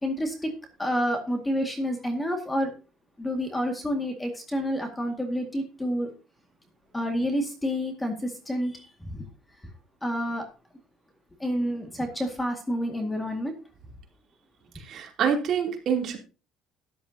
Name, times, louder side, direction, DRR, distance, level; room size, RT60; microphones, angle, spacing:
voice 1, 0.0-0.5 0.8-2.7 3.2-6.1 6.9-9.3 10.0-10.5 11.4-13.5, equal, 10° left, 4 dB, 2.0 m, -29 dB
voice 2, 14.7-16.2, right 7 dB, 45° right, 2 dB, 3.1 m, -26 dB
13.0 x 10.5 x 2.8 m, 0.33 s
cardioid pair, 140°, 0 cm